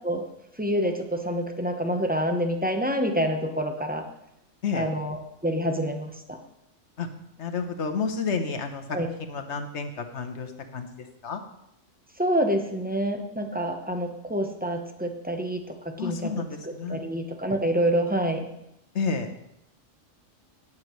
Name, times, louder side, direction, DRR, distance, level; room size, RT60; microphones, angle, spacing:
voice 1, 0.6-4.0 4.7-6.4 8.9-9.1 12.2-16.3 16.6-18.5, equal, 10° right, 5 dB, 0.8 m, -27 dB
voice 2, 7.4-9.0 9.3-11.4 16.0-17.0 18.9-19.3, left 5 dB, 60° left, 6 dB, 1.2 m, -30 dB
18.0 x 7.3 x 3.1 m, 0.81 s
omnidirectional pair, 1.3 m